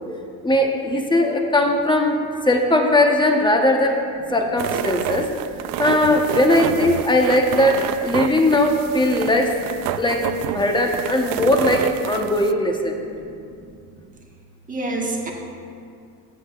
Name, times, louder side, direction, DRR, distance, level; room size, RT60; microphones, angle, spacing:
voice 1, 0.4-4.0 4.3-5.3 5.8-9.5 10.0-13.0, left 1 dB, 10° left, 2 dB, 1.1 m, -19 dB
sound 1, 4.6-12.5, right 12 dB, 55° right, 0.5 m, -28 dB
voice 2, 13.0-13.3 13.6-13.7 14.7-15.3, right 2 dB, 20° right, 0 dB, 1.5 m, -28 dB
14.5 x 7.8 x 2.5 m, 2.4 s
supercardioid pair, 85°, 41 cm